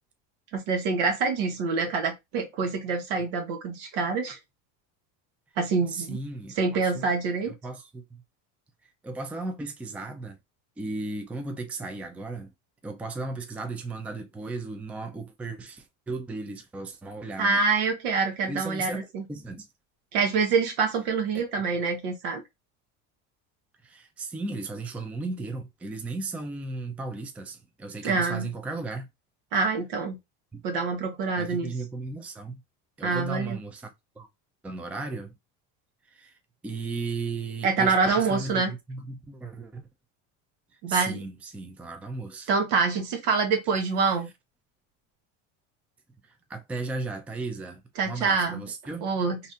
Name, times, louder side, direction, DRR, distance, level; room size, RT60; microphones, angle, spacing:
voice 1, 0.5-4.4 5.6-6.2 6.6-7.5 17.4-19.2 20.1-22.4 28.0-28.5 29.5-30.2 30.6-31.7 33.0-33.6 37.6-38.7 40.8-41.2 42.5-44.3 48.0-48.6 49.0-49.4, right 4 dB, 75° right, 1.3 m, -26 dB
voice 2, 5.9-7.1 7.4-8.2 8.8-10.4 10.8-12.5 12.8-17.6 18.5-19.0 19.3-19.7 21.3-21.4 23.8-29.1 30.5-30.6 31.4-32.6 33.0-34.3 34.6-35.4 36.1-39.9 40.9-42.5 46.3-49.0, right 3 dB, 5° right, 0.4 m, -36 dB
4.0 x 2.7 x 2.4 m
supercardioid pair, 120°, 37 cm